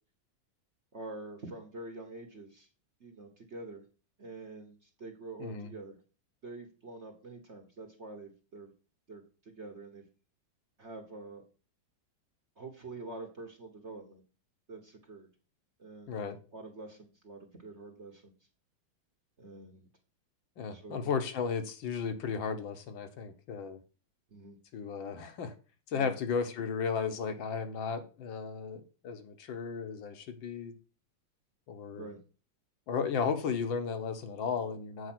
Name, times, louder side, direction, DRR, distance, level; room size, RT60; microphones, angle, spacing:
voice 1, 0.9-2.7 3.0-3.8 4.2-6.0 6.4-8.7 9.1-10.0 10.8-11.4 12.6-14.2 14.7-15.3 15.8-16.1 16.5-18.3 19.4-19.9 20.7-21.1 24.3-24.6 25.9-26.2 32.0-32.2, right 2 dB, 40° right, 1.4 m, -46 dB
voice 2, 5.4-5.7 16.1-16.4 20.6-23.8 24.7-25.5 25.9-30.8 31.7-32.1 32.9-35.1, left 6 dB, 75° left, 1.8 m, -34 dB
8.1 x 4.9 x 6.0 m
omnidirectional pair, 2.2 m